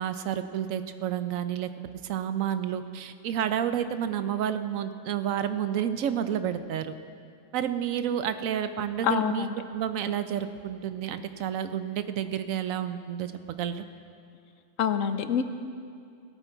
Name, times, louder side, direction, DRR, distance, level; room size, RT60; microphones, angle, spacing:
voice 1, 0.0-1.7 2.0-6.9 7.5-13.3 13.6-13.8, right 9 dB, 85° right, 11 dB, 1.1 m, -30 dB
voice 2, 9.0-9.5 14.8-15.4, left 8 dB, 80° left, 10 dB, 1.1 m, -26 dB
17.0 x 13.0 x 4.6 m, 2.4 s
omnidirectional pair, 1.4 m